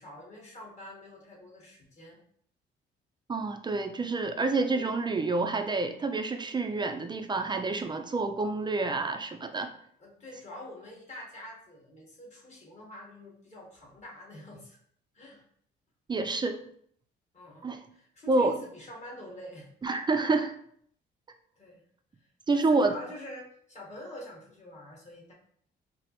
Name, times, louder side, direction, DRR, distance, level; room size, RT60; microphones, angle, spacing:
voice 1, 0.0-2.2 4.5-4.6 10.0-14.8 15.1-15.4 17.3-19.7 21.6-21.8 22.5-25.3, left 1 dB, 35° left, -3 dB, 1.5 m, -46 dB
voice 2, 3.3-9.7 16.1-16.6 17.6-17.8 18.3-18.6 19.8-20.6 22.5-22.9, right 3 dB, 25° right, 6 dB, 0.4 m, -28 dB
4.8 x 2.0 x 3.0 m, 0.64 s
cardioid pair, 90°, 20 cm